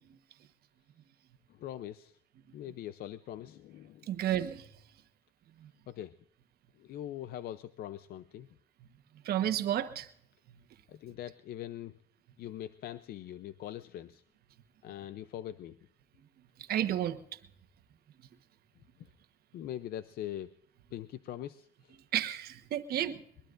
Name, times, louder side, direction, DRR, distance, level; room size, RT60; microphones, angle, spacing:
voice 1, 1.5-2.2 2.5-4.1 5.9-6.2 6.8-8.5 10.9-12.0 12.4-14.2 14.8-15.8 19.0-19.1 19.5-20.5 20.9-22.0, left 12 dB, 65° left, 13 dB, 0.6 m, -42 dB
voice 2, 4.1-4.7 5.6-5.7 9.2-10.1 10.5-10.6 16.6-17.2 22.1-23.2, right 11 dB, 65° right, 9 dB, 1.2 m, -32 dB
22.0 x 21.0 x 2.5 m, 0.69 s
cardioid pair, 110°, 17 cm